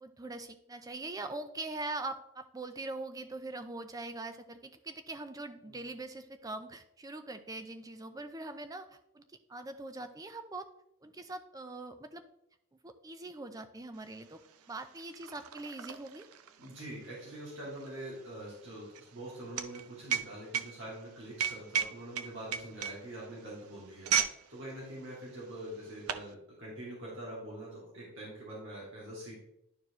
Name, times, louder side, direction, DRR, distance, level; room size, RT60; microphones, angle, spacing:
voice 1, 0.0-10.7 11.0-12.2 12.7-14.4 14.7-16.3, right 2 dB, 15° right, 9 dB, 0.4 m, -42 dB
sound 1, 14.1-14.2 14.5-24.4 24.7-25.0 25.6-26.3, right 8 dB, 85° right, 0.5 m, -35 dB
voice 2, 16.6-29.4, right 1 dB, 55° right, -6 dB, 2.5 m, -44 dB
11.0 x 4.7 x 3.0 m, 0.81 s
head